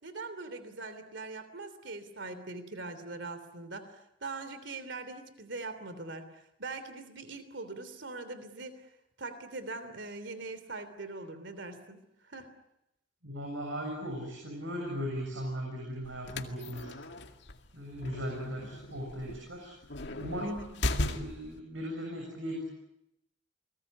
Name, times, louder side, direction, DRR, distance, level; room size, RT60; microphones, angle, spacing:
voice 1, 0.0-8.9 9.2-12.5 20.4-20.6, right 3 dB, 70° right, 11 dB, 3.2 m, -42 dB
voice 2, 13.2-16.9 17.7-19.7 20.2-22.6, equal, 85° right, 1 dB, 7.4 m, -38 dB
sound 1, 16.0-21.6, left 2 dB, 65° left, 2.2 m, -37 dB
30.0 x 21.0 x 9.5 m, 0.86 s
head